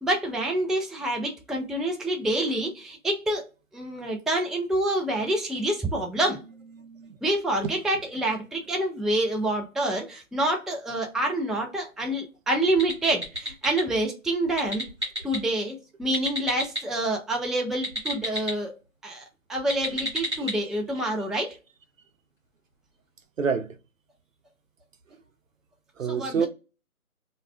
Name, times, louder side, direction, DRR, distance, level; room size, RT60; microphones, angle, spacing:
voice 1, 0.0-3.4 3.7-6.4 7.2-14.8 15.2-18.7 19.0-21.5 26.1-26.5, right 1 dB, ahead, 0.3 m, -27 dB
voice 2, 6.8-7.1 7.6-7.7 20.4-20.6 23.4-23.8 26.0-26.5, right 6 dB, 65° right, 0.5 m, -28 dB
sound 1, 12.7-13.8 14.4-15.4 16.0-16.8 17.7-18.5 19.6-20.5, equal, 20° right, 0.9 m, -31 dB
2.3 x 2.1 x 3.3 m
figure-of-eight pair, 175°, 42 cm